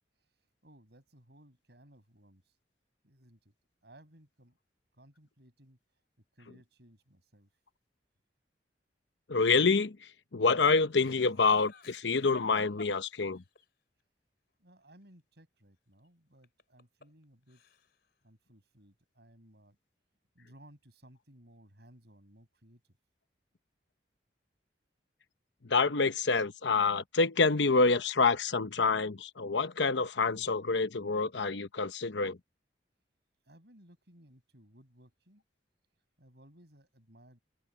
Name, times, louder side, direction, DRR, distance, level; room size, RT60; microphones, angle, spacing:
voice 1, 0.1-2.6 3.0-3.5 3.8-4.6 4.9-6.0 6.3-7.6 14.6-17.6 18.2-19.8 20.3-23.0 33.4-35.4 36.2-37.4, right 1 dB, 65° right, 7.4 m, -60 dB
voice 2, 9.3-10.0 10.3-13.4 25.6-32.4, left 4 dB, 80° left, 0.9 m, -27 dB
Laughter, 10.9-13.6 16.4-17.2 17.5-18.1, left 3 dB, 60° left, 4.3 m, -53 dB
head